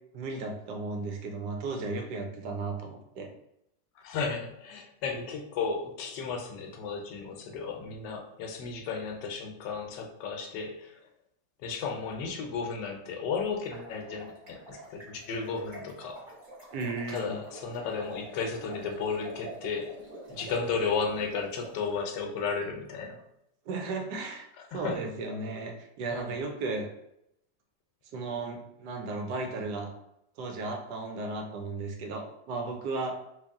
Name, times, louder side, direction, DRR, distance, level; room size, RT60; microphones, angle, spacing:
voice 1, 0.1-3.3 16.7-17.4 23.7-26.9 28.1-29.9 30.4-33.2, right 3 dB, 75° right, 3 dB, 1.1 m, -35 dB
voice 2, 4.0-11.0 11.6-16.2 17.1-19.9 20.3-23.2 24.7-25.0 26.1-26.3, left 5 dB, 75° left, 2 dB, 1.2 m, -34 dB
sound 1, 13.7-22.0, right 1 dB, 35° right, 0.9 m, -46 dB
3.2 x 2.7 x 3.5 m, 0.81 s
omnidirectional pair, 1.9 m